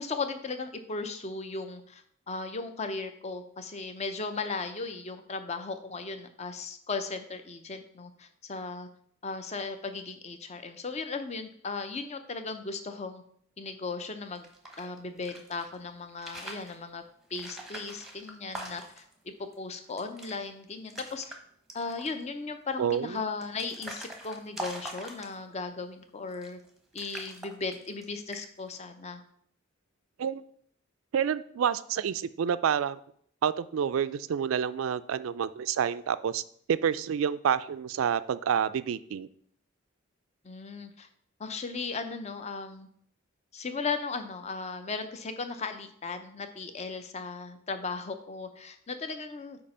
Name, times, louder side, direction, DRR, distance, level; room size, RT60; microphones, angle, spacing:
voice 1, 0.0-8.9 9.2-13.2 13.6-14.5 14.8-17.0 17.3-21.3 21.7-26.6 26.9-29.2 40.4-41.1 41.4-42.9 43.5-49.6, left 4 dB, 30° left, 8 dB, 0.6 m, -36 dB
sound 1, 14.3-15.7 16.1-16.8 17.3-19.1 19.5-19.6 19.9-20.4 20.7-21.4 21.7-22.2 22.9-25.6 26.3-26.7 27.0-28.0 28.3-28.7, right 1 dB, ahead, 0.9 m, -43 dB
voice 2, 22.8-23.2 30.2-30.4 31.1-33.0 33.4-36.4 36.7-39.3, right 8 dB, 75° right, 15 dB, 0.3 m, -28 dB
8.4 x 2.9 x 5.4 m, 0.64 s
head